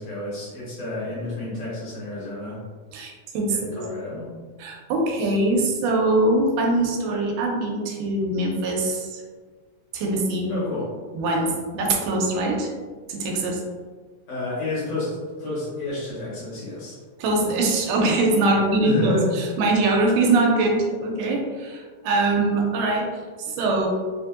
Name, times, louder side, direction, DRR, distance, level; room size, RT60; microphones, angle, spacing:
voice 1, 0.0-2.6 3.5-4.3 10.5-10.9 14.3-17.0 18.4-19.3, left 2 dB, 60° left, -9 dB, 2.0 m, -30 dB
voice 2, 2.9-3.8 4.6-9.2 9.9-10.5 11.1-12.7 13.1-13.6 17.2-23.9, right 2 dB, 85° right, 0 dB, 2.2 m, -23 dB
4.9 x 2.6 x 2.4 m, 1.5 s
omnidirectional pair, 3.8 m